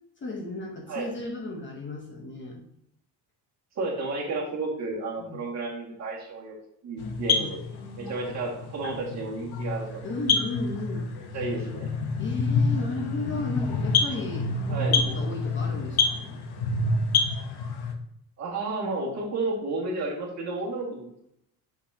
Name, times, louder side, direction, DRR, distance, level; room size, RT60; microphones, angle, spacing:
voice 1, 0.2-2.6 5.2-5.4 7.3-8.1 10.0-11.1 12.2-16.3, left 2 dB, 30° left, 1 dB, 1.0 m, -35 dB
voice 2, 3.8-6.6 6.8-7.6 8.0-10.0 11.3-11.9 14.7-15.0 18.4-21.1, right 3 dB, 40° right, -3 dB, 1.9 m, -32 dB
sound 1, 7.0-17.9, left 4 dB, 70° left, 0.9 m, -27 dB
6.3 x 5.8 x 2.8 m, 0.74 s
cardioid pair, 165°, 40 cm